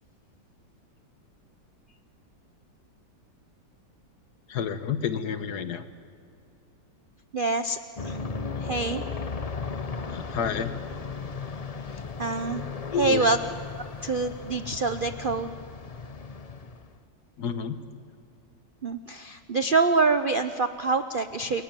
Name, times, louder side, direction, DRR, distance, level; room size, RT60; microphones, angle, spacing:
voice 1, 4.5-5.8 10.1-10.7 12.9-13.3 17.4-17.8, left 7 dB, 65° left, 10 dB, 1.7 m, -29 dB
voice 2, 7.3-8.2 8.6-9.0 11.9-12.6 13.0-13.4 14.0-15.6 18.8-21.6, right 3 dB, 55° right, 9 dB, 0.6 m, -26 dB
Aircraft, 8.0-17.0, left 4 dB, 40° left, 0.5 m, -36 dB
29.5 x 21.5 x 9.0 m, 2.5 s
omnidirectional pair, 1.9 m